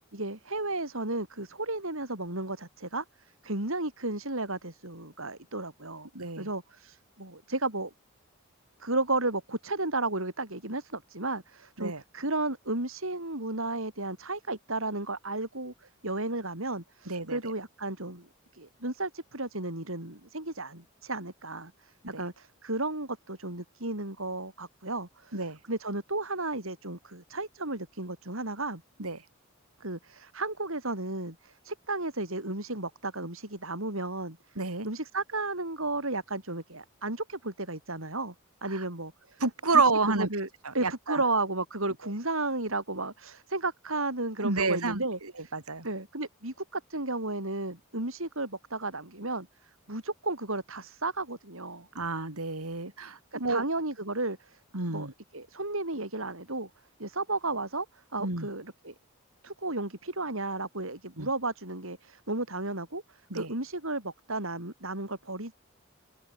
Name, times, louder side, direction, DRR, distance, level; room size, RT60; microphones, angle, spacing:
voice 1, 0.1-6.1 6.4-7.9 8.8-18.3 18.5-28.8 29.8-34.4 34.8-38.3 38.6-39.4 39.7-39.8 40.2-40.5 40.7-45.6 45.8-51.9 53.3-54.6 54.9-55.1 55.3-56.7 57.0-58.9 59.4-65.5, right 2 dB, 70° right, 5.2 m, -33 dB
voice 2, 6.1-6.5 11.8-12.0 17.1-17.5 22.1-22.2 25.3-25.6 29.0-29.2 34.6-34.9 38.7-38.8 39.4-40.3 40.8-41.2 44.4-45.0 45.5-45.9 51.9-53.6 54.7-55.1 58.2-58.5 61.2-61.3 63.3-63.5, right 3 dB, 90° right, 4.0 m, -29 dB
open air
head